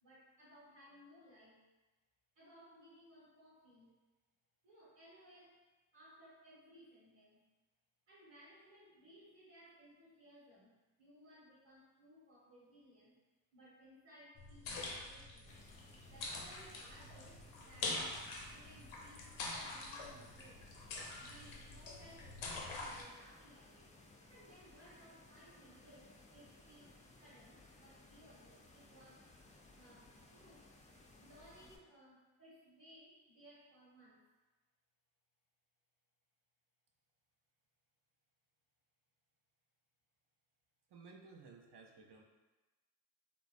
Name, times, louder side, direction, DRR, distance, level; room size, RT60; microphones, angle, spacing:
voice 1, 0.0-1.6 2.3-3.9 4.6-5.6 5.9-7.5 8.1-13.2 13.5-15.7 16.0-18.1 18.5-20.6 21.2-24.0 24.3-29.3 29.7-30.7 31.2-34.3, equal, 90° right, -10 dB, 1.3 m, -61 dB
sound 1, 14.4-23.0, left 2 dB, 85° left, 0.6 m, -45 dB
sound 2, 15.5-31.8, left 2 dB, 15° left, 0.4 m, -61 dB
voice 2, 40.9-42.2, right 4 dB, 60° right, 2 dB, 0.6 m, -57 dB
3.1 x 2.2 x 2.5 m, 1.2 s
supercardioid pair, 40°, 46 cm